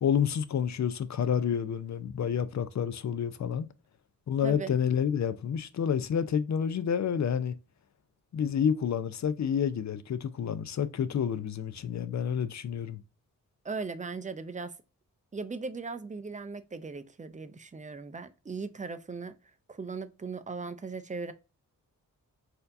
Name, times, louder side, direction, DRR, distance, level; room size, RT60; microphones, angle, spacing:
voice 1, 0.0-3.7 4.3-7.5 8.3-13.0, left 8 dB, 50° left, 0.5 m, -29 dB
voice 2, 4.4-4.8 13.6-14.7 15.3-19.4 19.7-21.3, right 4 dB, 20° right, 0.4 m, -38 dB
4.2 x 2.7 x 2.5 m
cardioid pair, 75°, 35 cm